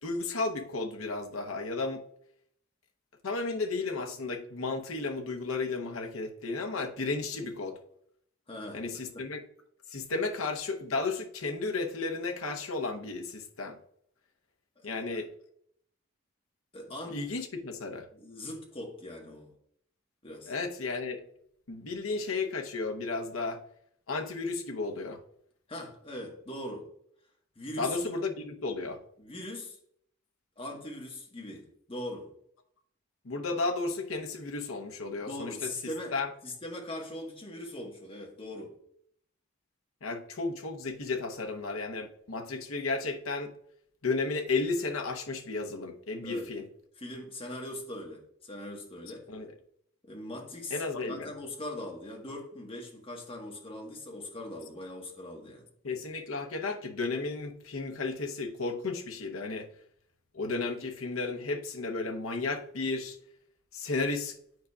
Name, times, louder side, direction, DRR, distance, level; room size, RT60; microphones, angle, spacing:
voice 1, 0.0-2.0 3.2-7.8 8.7-9.4 9.9-13.8 14.8-15.3 17.1-18.1 20.5-21.2 21.7-23.6 24.1-25.2 27.8-29.0 33.2-36.3 40.0-43.5 44.0-46.7 49.3-49.5 50.7-51.3 55.8-59.7 60.3-63.2 63.7-64.4, left 3 dB, 85° left, 4 dB, 0.9 m, -33 dB
voice 2, 8.5-8.8 9.1-9.2 14.8-15.1 16.7-17.2 18.1-19.5 20.2-20.5 25.7-26.9 27.5-28.1 29.2-29.8 30.6-32.3 35.1-36.1 36.4-38.8 46.2-46.5 47.0-49.2 50.0-55.6, left 1 dB, 25° left, 0 dB, 1.4 m, -41 dB
9.2 x 5.0 x 2.4 m, 0.68 s
head